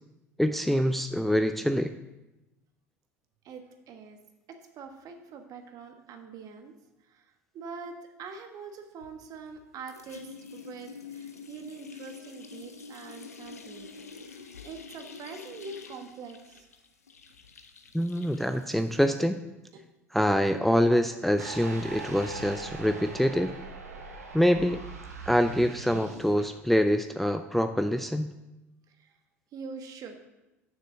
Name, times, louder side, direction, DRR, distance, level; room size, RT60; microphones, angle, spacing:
voice 1, 0.4-1.9 17.9-19.4 20.1-23.5 24.3-24.8 25.3-28.3, equal, ahead, 8 dB, 0.4 m, -25 dB
voice 2, 3.4-4.2 4.5-6.7 7.0-13.9 14.3-16.7 17.9-18.0 19.7-19.8 28.9-29.1 29.5-30.2, right 5 dB, 50° right, 5 dB, 1.3 m, -44 dB
sound 1, 9.0-9.6 9.9-19.2, left 5 dB, 90° left, 0.6 m, -47 dB
sound 2, 21.4-26.5, right 4 dB, 90° right, 1.1 m, -41 dB
6.6 x 6.6 x 6.2 m, 0.99 s
hypercardioid pair, 70°, 8 cm